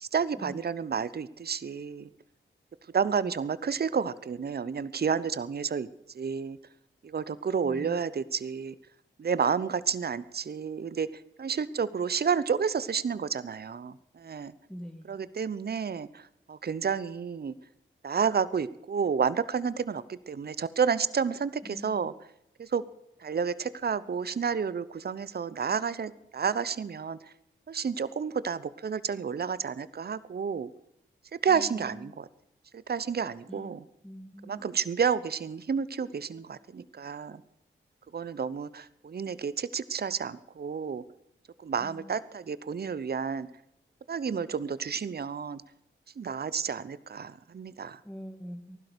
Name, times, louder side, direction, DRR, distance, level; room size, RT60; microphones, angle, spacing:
voice 1, 0.0-2.1 2.9-5.9 6.1-6.6 7.0-8.7 9.2-11.1 11.4-14.5 15.1-17.5 18.0-22.1 22.6-22.8 23.2-27.2 27.7-30.7 31.3-32.3 32.7-33.8 34.5-37.4 38.1-41.0 41.6-43.5 44.1-45.6 46.2-48.0, right 6 dB, 50° right, 17 dB, 0.8 m, -30 dB
voice 2, 7.6-8.0 14.7-15.1 21.6-22.1 31.5-32.1 33.5-33.7 34.0-34.8 41.8-42.1 48.0-48.8, equal, 5° left, 4 dB, 1.9 m, -44 dB
15.0 x 12.0 x 6.7 m, 0.81 s
supercardioid pair, 40°, 21 cm